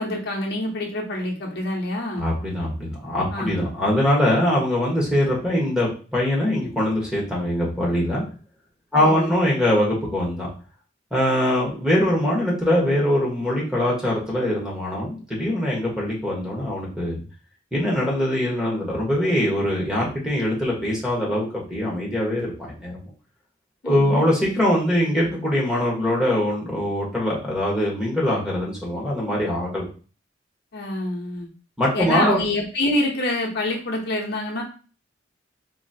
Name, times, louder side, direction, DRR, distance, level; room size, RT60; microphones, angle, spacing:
voice 1, 0.0-2.2 3.3-3.6 8.9-9.3 23.8-24.2 30.7-31.5 31.9-34.6, left 1 dB, 60° left, -1 dB, 0.8 m, -26 dB
voice 2, 2.2-8.2 8.9-10.5 11.1-17.2 17.7-23.1 23.8-29.9 31.8-32.4, left 1 dB, 5° right, -6 dB, 1.1 m, -22 dB
3.9 x 2.7 x 2.7 m, 0.37 s
head